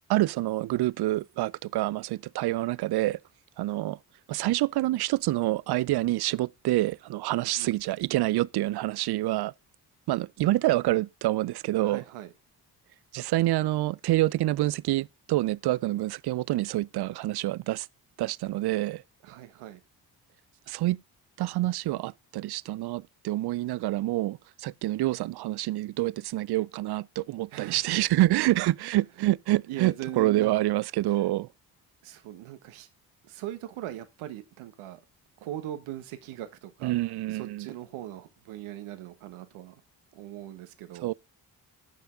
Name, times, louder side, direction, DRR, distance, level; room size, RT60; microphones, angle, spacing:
voice 1, 0.1-3.2 3.6-4.0 4.3-9.5 10.1-12.0 13.1-17.9 18.2-19.0 20.7-21.0 21.4-31.5 36.8-37.7 41.0-41.1, right 16 dB, 55° right, 0.5 m, -27 dB
voice 2, 7.3-7.8 11.8-12.3 19.2-19.8 27.5-27.8 28.6-28.7 29.7-30.5 31.1-31.2 32.0-32.9 33.2-35.0 35.4-36.9 37.3-39.8 40.1-41.1, right 13 dB, 75° right, 1.4 m, -40 dB
15.5 x 5.7 x 3.8 m
hypercardioid pair, 45°, 50 cm